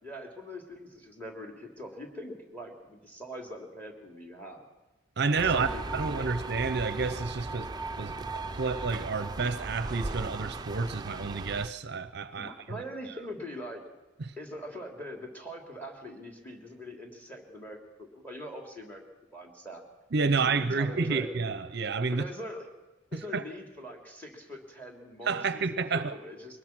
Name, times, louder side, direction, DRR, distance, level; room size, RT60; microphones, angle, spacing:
voice 1, 0.0-4.7 5.4-6.3 12.4-13.8 14.4-19.0 19.3-19.8 20.3-21.4 22.1-22.7 23.1-26.6, equal, 10° left, 3.3 m, -42 dB
voice 2, 5.2-7.7 8.0-12.8 14.2-14.3 20.1-22.2 23.1-23.4 25.2-26.1, right 4 dB, 55° right, 0.7 m, -30 dB
sound 1, 5.4-11.7, right 3 dB, 20° right, 0.6 m, -37 dB
23.0 x 19.5 x 6.1 m
head